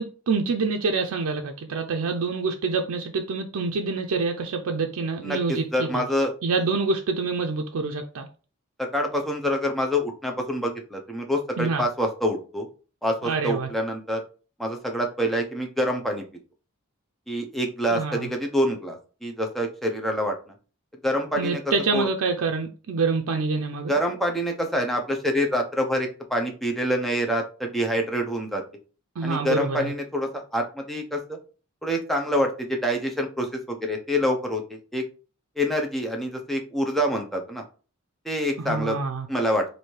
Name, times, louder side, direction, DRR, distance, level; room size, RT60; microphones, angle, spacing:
voice 1, 0.0-6.0 6.4-8.3 11.6-11.9 13.2-13.7 17.9-18.3 21.4-23.9 29.2-29.9 38.6-39.3, right 4 dB, 80° right, 0.4 m, -26 dB
voice 2, 5.2-6.3 8.8-12.7 13.0-14.2 14.6-16.2 17.3-20.5 21.0-21.6 21.9-22.1 23.9-28.6 29.2-31.4 31.8-35.0 35.6-37.6 38.2-39.0 39.3-39.7, equal, ahead, 0.6 m, -26 dB
3.1 x 2.6 x 4.4 m
head